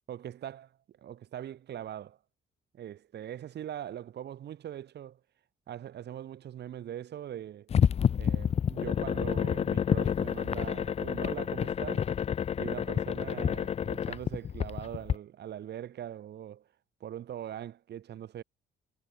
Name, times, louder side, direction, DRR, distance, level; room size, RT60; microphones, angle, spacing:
voice 1, 0.1-2.2 2.7-5.2 5.7-7.7 8.1-12.1 12.6-16.6 17.0-18.4, right 10 dB, 60° right, 1.0 m, -42 dB
sound 1, 7.7-15.1, left 8 dB, 30° left, 0.4 m, -29 dB
cardioid pair, 90°, 20 cm